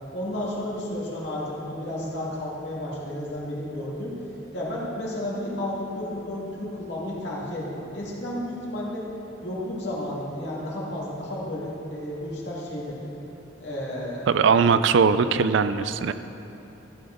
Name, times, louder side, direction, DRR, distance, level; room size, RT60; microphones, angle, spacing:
voice 1, 0.1-4.1 4.5-9.1 9.4-13.0 13.6-14.3, left 1 dB, 60° left, -6 dB, 2.2 m, -32 dB
voice 2, 14.3-16.1, right 5 dB, 70° right, 12 dB, 0.4 m, -20 dB
14.0 x 7.0 x 3.8 m, 2.9 s
head